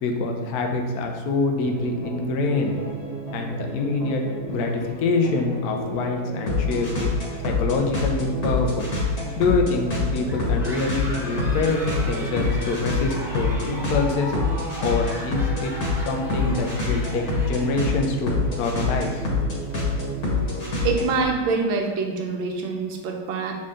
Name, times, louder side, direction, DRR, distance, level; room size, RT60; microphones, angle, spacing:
voice 1, 0.0-2.8 3.3-7.1 7.4-8.9 9.4-14.3 14.8-15.7 16.0-19.3, left 3 dB, 65° left, 2 dB, 1.0 m, -25 dB
sound 1, 1.6-21.2, left 3 dB, 45° left, 1.8 m, -27 dB
sound 2, 10.2-18.1, equal, 5° right, 0.3 m, -37 dB
voice 2, 20.8-23.6, right 4 dB, 70° right, 2 dB, 1.5 m, -25 dB
7.4 x 4.1 x 3.7 m, 1.5 s
omnidirectional pair, 2.3 m